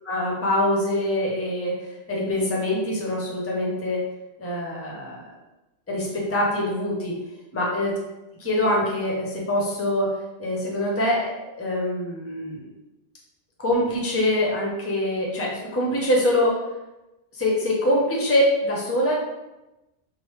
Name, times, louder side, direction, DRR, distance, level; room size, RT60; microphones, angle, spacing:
voice 1, 0.0-4.0 4.4-5.4 5.9-7.2 7.5-7.9 8.4-10.1 10.4-12.7 13.6-16.6 17.3-19.1, left 1 dB, 20° left, -3 dB, 0.4 m, -24 dB
3.1 x 2.0 x 3.1 m, 0.98 s
omnidirectional pair, 1.2 m